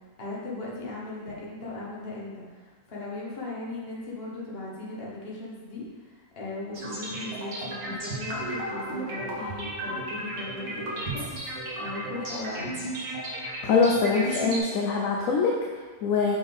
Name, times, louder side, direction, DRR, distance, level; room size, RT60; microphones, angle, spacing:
voice 1, 0.2-12.8, left 2 dB, 40° left, -5 dB, 1.5 m, -38 dB
sound 1, 6.7-14.6, right 1 dB, 80° right, 1.7 m, -34 dB
voice 2, 13.6-16.4, left 4 dB, 70° left, -1 dB, 1.0 m, -24 dB
5.4 x 5.2 x 3.5 m, 1.4 s
omnidirectional pair, 1.6 m